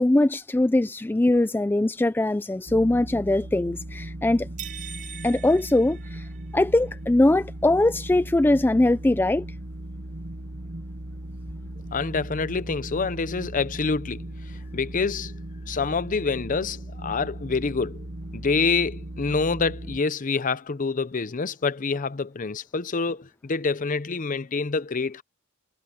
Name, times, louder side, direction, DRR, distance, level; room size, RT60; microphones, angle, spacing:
voice 1, 0.0-4.5 5.2-6.2 6.5-9.5, left 1 dB, 10° left, 0.3 m, -21 dB
sound 1, 2.7-20.0, right 1 dB, 55° right, 1.5 m, -38 dB
sound 2, 4.6-6.7, right 9 dB, 40° right, 1.9 m, -41 dB
voice 2, 11.9-14.3 14.7-15.3 15.7-18.0 18.3-25.2, left 4 dB, 40° left, 0.6 m, -26 dB
head